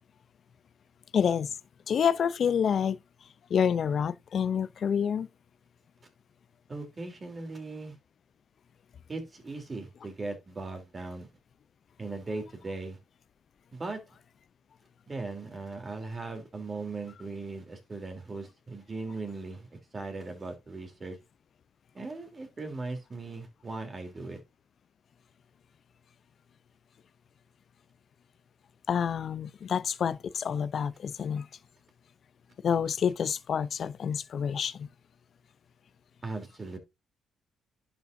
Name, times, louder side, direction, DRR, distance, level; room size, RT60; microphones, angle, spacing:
voice 1, 1.1-1.5 1.9-3.0 3.5-5.3 28.9-31.5 32.6-34.9, left 7 dB, 55° left, 0.5 m, -28 dB
voice 2, 6.7-8.0 9.1-11.3 12.0-13.0 13.7-14.0 15.1-21.2 21.9-24.4 36.2-36.8, right 3 dB, 30° right, 3.1 m, -38 dB
11.0 x 5.5 x 2.6 m
cardioid pair, 90°, 0 cm